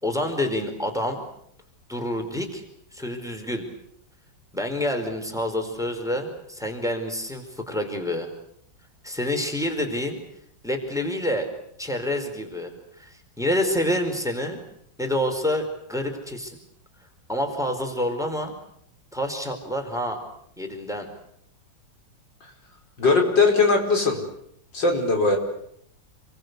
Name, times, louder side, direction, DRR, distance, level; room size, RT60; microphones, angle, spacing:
voice 1, 0.0-1.2 1.9-2.6 2.9-3.6 4.5-8.3 9.0-10.2 10.6-11.5 11.8-14.6 15.0-16.6 17.3-18.5 19.1-20.2 20.6-21.1, left 1 dB, ahead, 5 dB, 4.7 m, -27 dB
voice 2, 23.0-24.2 24.7-25.4, left 3 dB, 75° left, 2 dB, 5.6 m, -19 dB
28.5 x 23.0 x 8.2 m, 0.72 s
omnidirectional pair, 2.0 m